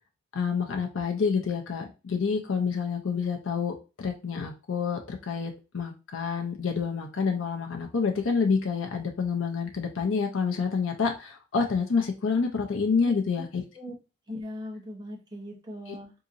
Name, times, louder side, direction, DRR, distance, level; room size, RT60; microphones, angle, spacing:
voice 1, 0.3-13.6, left 5 dB, 80° left, 3 dB, 0.5 m, -28 dB
voice 2, 14.3-16.1, left 1 dB, 20° right, -1 dB, 0.8 m, -39 dB
3.8 x 2.8 x 2.5 m, 0.30 s
head